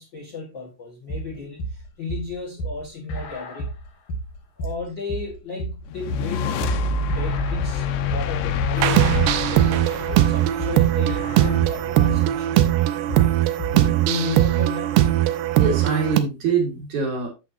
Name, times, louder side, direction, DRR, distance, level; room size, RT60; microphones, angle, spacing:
voice 1, 0.0-3.7 4.6-12.9 13.9-14.9, left 4 dB, 40° left, -2 dB, 1.6 m, -34 dB
sound 1, 1.1-13.9, right 2 dB, 60° left, 3.4 m, -32 dB
sound 2, 5.9-11.3, left 5 dB, 90° left, 2.9 m, -26 dB
sound 3, 8.8-16.2, right 14 dB, 85° right, 2.7 m, -20 dB
voice 2, 15.6-17.3, right 5 dB, 55° right, 1 dB, 2.8 m, -24 dB
8.5 x 7.8 x 2.7 m, 0.27 s
omnidirectional pair, 4.7 m